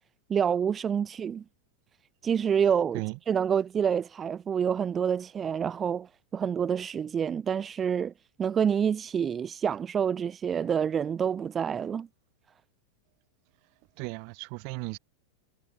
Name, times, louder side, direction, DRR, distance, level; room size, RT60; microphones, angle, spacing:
voice 1, 0.3-1.4 2.2-8.1 8.4-12.1, right 7 dB, 20° right, 0.4 m, -27 dB
voice 2, 14.0-15.0, right 40 dB or more, 45° right, 0.9 m, -36 dB
figure-of-eight pair, 90°, 0 cm